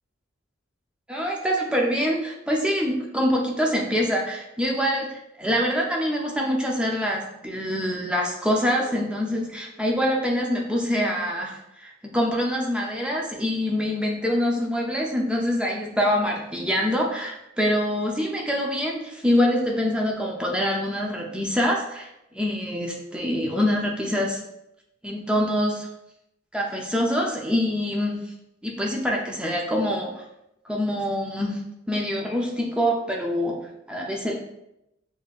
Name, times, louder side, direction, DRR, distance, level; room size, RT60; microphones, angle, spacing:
voice 1, 1.1-22.1 22.3-24.4 25.0-25.9 26.5-28.3 28.6-30.2 30.7-31.6 31.9-33.6 33.9-34.4, equal, 5° right, -2 dB, 0.5 m, -25 dB
6.4 x 2.7 x 2.4 m, 0.85 s
head